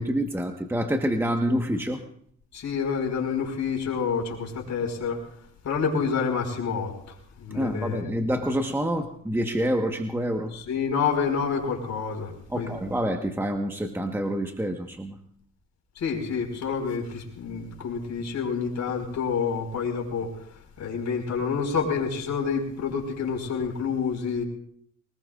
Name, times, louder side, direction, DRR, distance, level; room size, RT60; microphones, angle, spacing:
voice 1, 0.0-2.0 7.5-10.5 12.5-15.1, equal, 10° right, 4 dB, 1.3 m, -27 dB
voice 2, 2.5-5.2 5.6-8.3 10.5-12.8 15.9-24.4, left 6 dB, 65° left, 2 dB, 4.9 m, -28 dB
23.5 x 20.0 x 2.5 m, 0.64 s
cardioid pair, 90°, 30 cm